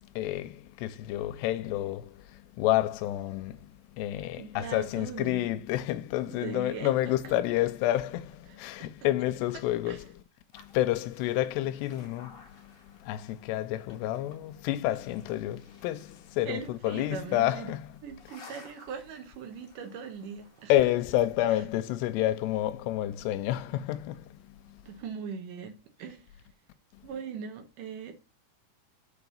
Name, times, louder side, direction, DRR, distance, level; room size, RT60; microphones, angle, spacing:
voice 1, 0.0-10.2 10.5-17.9 20.7-24.8 26.9-27.1, left 14 dB, 85° left, 2.8 m, -30 dB
voice 2, 4.4-5.5 6.3-6.9 7.2-7.3 8.5-8.9 9.9-10.0 16.4-17.7 18.0-20.7 24.9-26.3 27.0-28.2, right 6 dB, 65° right, 2.3 m, -40 dB
sound 1, 10.5-20.7, left 4 dB, 40° left, 1.6 m, -57 dB
6.6 x 4.8 x 6.9 m
omnidirectional pair, 4.8 m